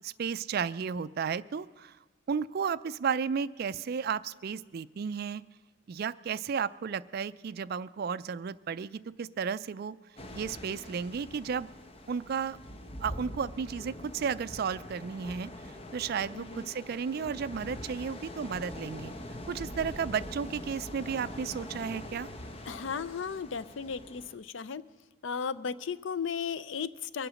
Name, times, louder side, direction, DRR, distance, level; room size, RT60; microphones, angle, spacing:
voice 1, 0.0-2.0 2.3-5.4 5.9-10.0 10.3-11.7 12.1-12.6 13.0-15.5 15.9-19.1 19.5-22.3, right 6 dB, 50° right, 15 dB, 0.3 m, -33 dB
sound 1, 10.2-24.4, left 1 dB, 30° left, 0.8 m, -44 dB
voice 2, 16.3-16.6 22.7-24.8 25.2-27.3, left 6 dB, 65° left, 16 dB, 0.5 m, -35 dB
22.5 x 7.7 x 6.3 m, 1.4 s
head